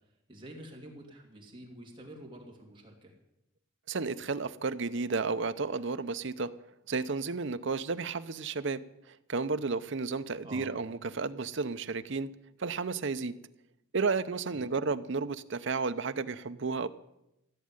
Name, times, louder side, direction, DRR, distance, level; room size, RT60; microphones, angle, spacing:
voice 1, 0.3-3.1 10.4-10.7 14.5-14.7, right 1 dB, 25° right, 0 dB, 2.8 m, -48 dB
voice 2, 3.9-6.5 6.9-8.8 9.1-12.3 12.6-13.3 13.9-16.9, right 4 dB, 60° right, 12 dB, 0.7 m, -32 dB
15.0 x 7.5 x 9.7 m, 0.86 s
head